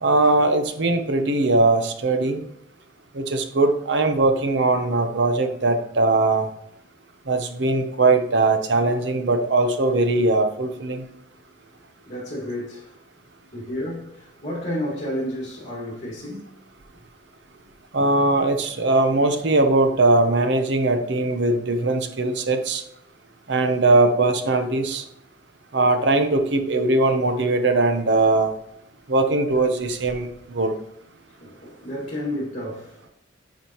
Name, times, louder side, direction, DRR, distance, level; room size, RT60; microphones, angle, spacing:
voice 1, 0.0-2.4 3.1-6.5 7.3-11.0 17.9-22.8 23.5-25.0 25.7-28.5 29.1-30.8, right 2 dB, 65° right, 0.9 m, -20 dB
voice 2, 12.1-12.9 13.5-16.5 31.4-33.1, left 1 dB, 40° left, 2.1 m, -31 dB
9.1 x 4.9 x 3.0 m
head